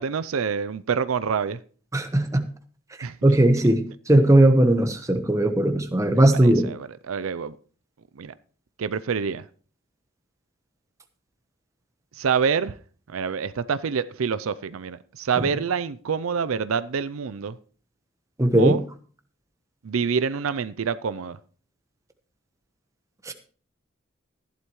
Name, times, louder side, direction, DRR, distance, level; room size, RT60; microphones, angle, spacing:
voice 1, 0.0-1.6 3.0-3.1 6.1-7.6 8.2-8.3 8.8-9.4 12.1-12.8 13.1-17.6 18.6-18.8 19.8-21.4, right 6 dB, 80° right, 0.5 m, -26 dB
voice 2, 1.9-2.4 3.2-6.7 18.4-18.8 23.3-23.4, right 1 dB, 15° right, 1.0 m, -18 dB
15.0 x 11.0 x 3.1 m
head